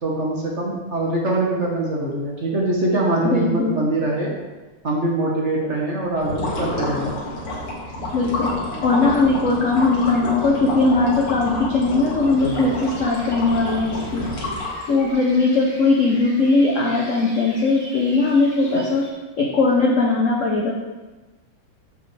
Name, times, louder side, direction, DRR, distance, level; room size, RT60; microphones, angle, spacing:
voice 1, 0.0-4.3 4.8-7.2, right 2 dB, 40° right, -2 dB, 1.1 m, -23 dB
voice 2, 3.2-3.8 8.1-14.3 14.9-19.1 19.4-20.7, left 3 dB, 60° left, -1 dB, 0.8 m, -19 dB
sound 1, 6.1-15.1, left 1 dB, 85° left, 2.8 m, -29 dB
sound 2, 12.4-19.1, equal, 10° left, 3.0 m, -42 dB
13.0 x 5.4 x 3.3 m, 1.2 s
omnidirectional pair, 2.4 m